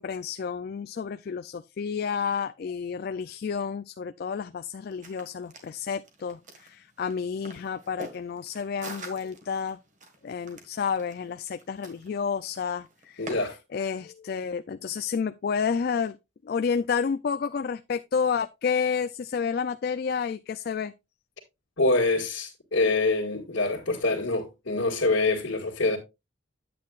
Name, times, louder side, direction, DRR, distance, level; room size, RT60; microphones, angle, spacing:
voice 1, 0.0-9.8 10.2-13.4 13.7-16.2 16.4-20.9, left 6 dB, 50° left, 0.3 m, -30 dB
sound 1, 4.8-13.3, right 2 dB, 40° right, 1.7 m, -46 dB
voice 2, 13.2-13.6 21.8-26.0, left 2 dB, 90° left, 1.8 m, -25 dB
9.4 x 8.4 x 2.4 m
head